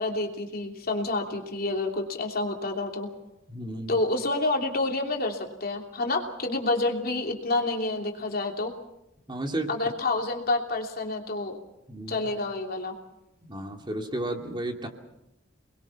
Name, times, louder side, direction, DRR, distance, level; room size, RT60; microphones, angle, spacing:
voice 1, 0.0-3.1 3.9-8.7 9.7-11.5 12.1-13.0, left 2 dB, 50° left, 2 dB, 3.0 m, -28 dB
voice 2, 3.5-4.0 9.3-9.7 11.9-12.3 13.4-14.9, right 1 dB, 25° right, 3 dB, 2.5 m, -33 dB
29.0 x 21.5 x 5.9 m, 0.85 s
head